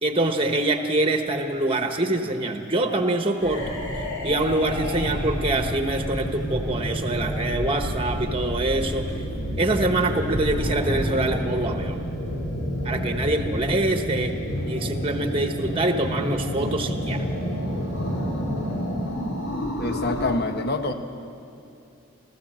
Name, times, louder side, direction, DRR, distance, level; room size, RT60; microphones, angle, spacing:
voice 1, 0.0-3.6 4.2-9.3 9.6-12.0 12.8-14.3 14.7-17.2, right 2 dB, 25° right, 5 dB, 1.1 m, -25 dB
sound 1, 3.4-20.3, equal, 85° left, 5.3 m, -29 dB
voice 2, 19.8-20.9, left 2 dB, 50° left, 7 dB, 1.2 m, -26 dB
29.5 x 13.5 x 7.7 m, 2.7 s
head